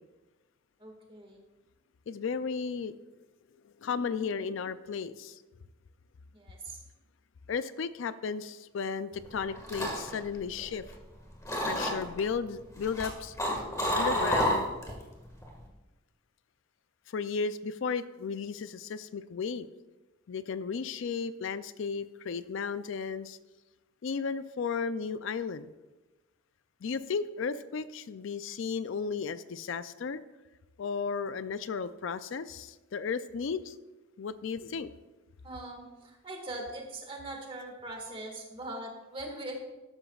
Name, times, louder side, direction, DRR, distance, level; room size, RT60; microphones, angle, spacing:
voice 1, 0.8-1.4 6.3-6.8 35.4-39.6, right 1 dB, 25° right, 2 dB, 1.7 m, -41 dB
voice 2, 2.1-2.9 3.8-5.4 7.5-10.8 11.7-13.3 13.9-14.7 17.1-19.7 20.3-23.4 24.0-25.7 26.8-30.2 30.8-33.8 34.2-34.9, left 5 dB, 65° left, 13 dB, 0.4 m, -34 dB
sound 1, 9.3-11.1 11.5-12.2 12.8-15.0 15.3-15.7, equal, 15° left, 1.7 m, -30 dB
13.0 x 11.5 x 2.4 m, 1.1 s
head